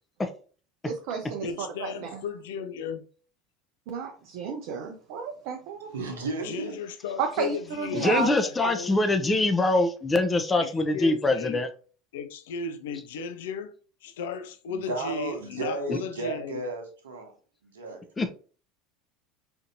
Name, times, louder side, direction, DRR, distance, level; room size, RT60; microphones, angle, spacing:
voice 1, 0.8-2.2 3.9-5.9 7.2-8.3, right 5 dB, 65° right, 0.5 m, -32 dB
voice 2, 1.4-3.1 6.4-9.0 10.6-11.6 12.1-13.7 14.0-16.6, left 5 dB, 75° left, 0.3 m, -35 dB
voice 3, 5.9-6.8 14.7-17.3 17.6-18.1, right 3 dB, 80° right, 0.9 m, -34 dB
voice 4, 7.9-11.7 15.9-16.0 18.2-18.3, left 2 dB, 20° left, 0.5 m, -24 dB
4.3 x 2.6 x 2.6 m
hypercardioid pair, 75°, 0 cm